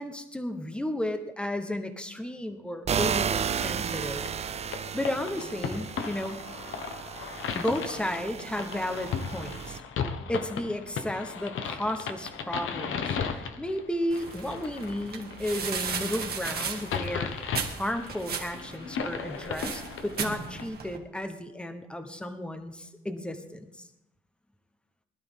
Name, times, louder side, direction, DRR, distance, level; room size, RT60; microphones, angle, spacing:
voice 1, 0.0-4.2 4.9-6.4 7.5-9.8 10.3-17.4 17.8-23.9, left 1 dB, 5° left, 7 dB, 1.0 m, -33 dB
sound 1, 2.9-9.8, right 7 dB, 30° right, 0.4 m, -33 dB
sound 2, 3.9-20.6, left 6 dB, 80° left, 1.3 m, -36 dB
bolsa basura, 14.1-21.0, right 6 dB, 50° right, 1.8 m, -36 dB
20.5 x 12.0 x 3.7 m, 0.90 s
wide cardioid pair, 155°, 20 cm